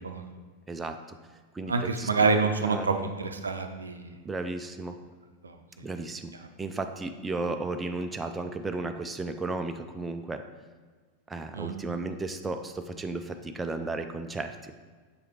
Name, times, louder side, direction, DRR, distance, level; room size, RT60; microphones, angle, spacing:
voice 1, 0.7-1.2 1.5-2.1 2.6-2.9 4.2-5.0 5.8-10.5 11.3-14.7, right 3 dB, 15° right, 7 dB, 0.3 m, -34 dB
voice 2, 1.7-4.2 5.4-5.9 11.5-11.8, right 4 dB, 75° right, 6 dB, 0.5 m, -27 dB
6.6 x 4.8 x 3.0 m, 1.5 s
figure-of-eight pair, 90°, 0 cm